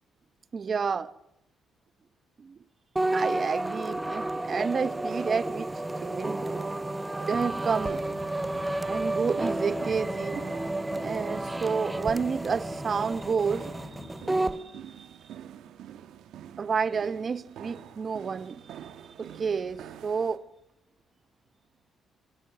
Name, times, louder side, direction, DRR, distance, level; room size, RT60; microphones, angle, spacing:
voice 1, 0.5-1.1 2.4-2.6 3.1-6.8 7.3-8.1 8.9-10.5 11.0-14.0 14.5-15.1 16.6-18.9 19.2-20.4, right 5 dB, 45° right, 1.0 m, -30 dB
sound 1, 3.0-14.6, right 2 dB, 10° right, 1.0 m, -31 dB
sound 2, 3.8-20.4, right 10 dB, 80° right, 1.6 m, -49 dB
sound 3, 7.3-14.4, left 2 dB, 30° left, 6.1 m, -47 dB
26.0 x 25.5 x 6.1 m
cardioid pair, 90°, 0 cm